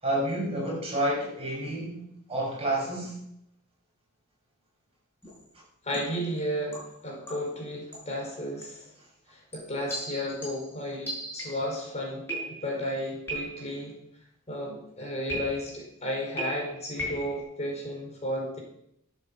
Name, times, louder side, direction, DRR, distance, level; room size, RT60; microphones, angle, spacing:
voice 1, 0.0-3.2, right 1 dB, 25° right, 6.9 m, -29 dB
sound 1, 5.2-5.5 5.9-6.2 6.7-7.6 7.9-8.2 8.6-8.9 9.5-11.8 12.3-12.9 13.3-13.8 15.3-15.9 16.4-17.4, right 1 dB, 10° left, 7.6 m, -38 dB
voice 2, 5.8-8.9 9.3-12.2 12.5-13.9 14.5-18.6, equal, 30° left, 4.8 m, -33 dB
12.5 x 9.2 x 7.6 m
head